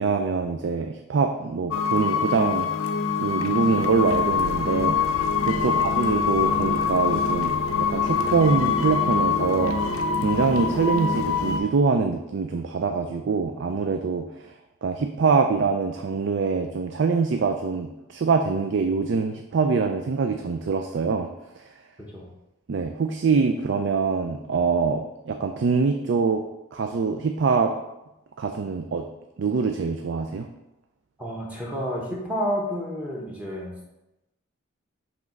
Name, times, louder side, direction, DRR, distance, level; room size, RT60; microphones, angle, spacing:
voice 1, 0.0-2.7 3.2-9.8 10.2-14.5 14.8-21.3 21.6-21.7 22.7-26.4 26.7-27.7 28.4-29.1 29.4-30.5, right 4 dB, 55° right, 5 dB, 0.3 m, -24 dB
sound 1, 1.7-11.6, left 5 dB, 75° left, 0.5 m, -24 dB
voice 2, 31.2-33.7, equal, 5° right, -4 dB, 1.0 m, -30 dB
5.9 x 3.2 x 5.1 m, 0.93 s
head